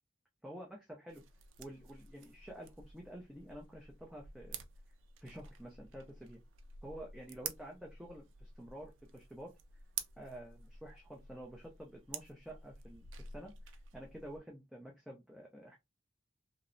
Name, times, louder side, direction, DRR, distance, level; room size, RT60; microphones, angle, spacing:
voice 1, 0.4-1.2 1.6-4.7 5.2-6.4 6.8-9.5 10.2-13.5 13.9-15.8, right 1 dB, 5° right, 0.4 m, -50 dB
sound 1, 1.1-14.4, right 7 dB, 90° right, 0.4 m, -50 dB
2.8 x 2.0 x 2.5 m
head